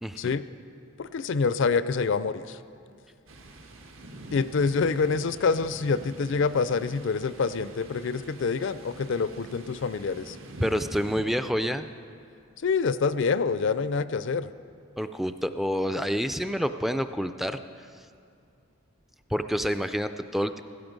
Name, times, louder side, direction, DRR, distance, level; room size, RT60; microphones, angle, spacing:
voice 1, 1.0-2.6 4.3-10.4 12.6-14.5, left 4 dB, 65° left, 14 dB, 0.5 m, -26 dB
Thunder, 3.3-11.2, right 1 dB, 75° right, 1.5 m, -45 dB
voice 2, 10.6-11.9 15.0-17.6 19.3-20.6, equal, ahead, 9 dB, 0.3 m, -28 dB
16.5 x 13.0 x 5.2 m, 2.3 s
head